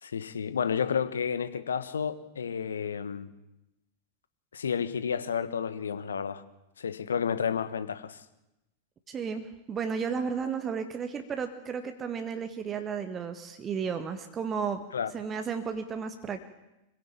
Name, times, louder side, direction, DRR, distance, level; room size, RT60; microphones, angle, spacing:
voice 1, 0.0-3.3 4.5-6.4 6.8-8.2 14.9-15.1, left 7 dB, 70° left, 13 dB, 1.3 m, -31 dB
voice 2, 9.1-14.8 15.1-16.5, right 6 dB, 25° right, 7 dB, 1.7 m, -33 dB
25.0 x 16.0 x 8.7 m, 0.95 s
figure-of-eight pair, 90°, 0 cm